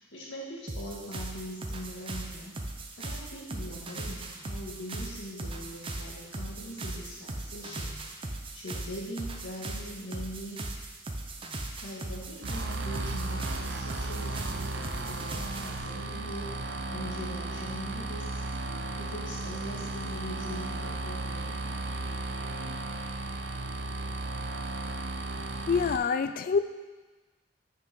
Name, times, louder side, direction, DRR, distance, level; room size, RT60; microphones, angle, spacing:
voice 1, 0.0-2.5 3.0-8.0 8.5-10.6 11.8-18.4 18.9-21.6, equal, 75° left, -4 dB, 2.0 m, -42 dB
sound 1, 0.7-15.8, right 2 dB, 30° right, 0.7 m, -38 dB
sound 2, 12.4-26.0, right 2 dB, 65° right, 0.6 m, -35 dB
voice 2, 25.3-26.6, left 5 dB, 50° left, 11 dB, 0.3 m, -27 dB
5.9 x 5.8 x 6.1 m, 1.2 s
head